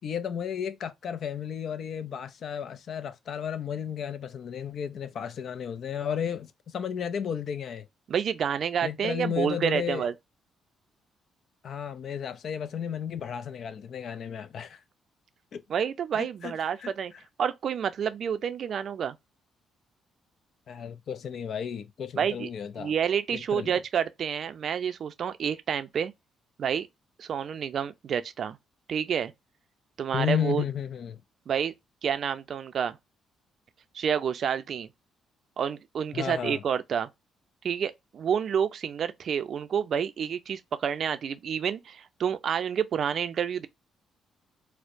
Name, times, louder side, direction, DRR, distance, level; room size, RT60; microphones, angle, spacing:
voice 1, 0.0-7.9 8.8-10.1 11.6-14.8 15.5-15.6 16.1-16.5 16.8-16.9 20.7-22.9 23.3-23.7 30.1-31.2 36.1-36.6, left 8 dB, 60° left, 0.4 m, -33 dB
voice 2, 8.1-10.1 15.7-17.1 17.4-19.2 22.1-22.5 22.8-26.1 26.6-26.9 27.2-28.6 28.9-29.3 30.0-30.6 31.5-31.7 32.0-33.0 33.9-34.9 35.6-37.1 37.6-43.7, right 8 dB, 60° right, 0.4 m, -29 dB
4.4 x 2.1 x 2.5 m
cardioid pair, 90°, 0 cm